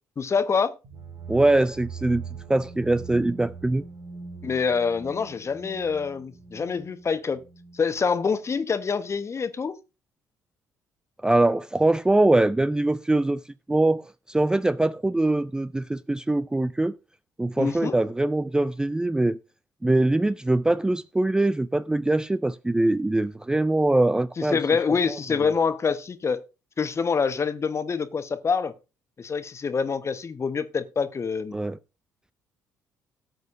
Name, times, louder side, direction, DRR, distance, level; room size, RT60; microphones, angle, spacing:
voice 1, 0.2-0.7 4.4-7.4 7.7-9.8 17.6-18.0 24.4-26.4 26.8-28.7 29.2-31.5, left 5 dB, 35° left, 1.2 m, -26 dB
sound 1, 0.8-8.5, right 5 dB, 60° right, 2.5 m, -42 dB
voice 2, 1.3-2.2 2.5-3.8 11.2-13.4 13.7-17.0 17.4-19.4 19.8-24.6 25.4-25.6 31.5-31.8, right 2 dB, 10° right, 0.4 m, -23 dB
17.5 x 8.1 x 2.6 m
figure-of-eight pair, 45°, 8 cm